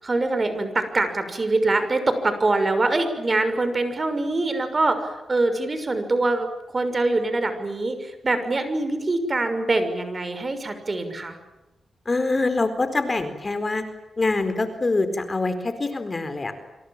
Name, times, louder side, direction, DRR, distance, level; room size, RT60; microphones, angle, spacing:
voice 1, 0.0-6.5 6.7-11.4, right 2 dB, 35° right, 9 dB, 6.3 m, -24 dB
voice 2, 12.1-13.8 14.2-16.5, left 3 dB, 35° left, 10 dB, 4.4 m, -24 dB
27.5 x 26.5 x 7.6 m, 1.0 s
cardioid pair, 80°, 0 cm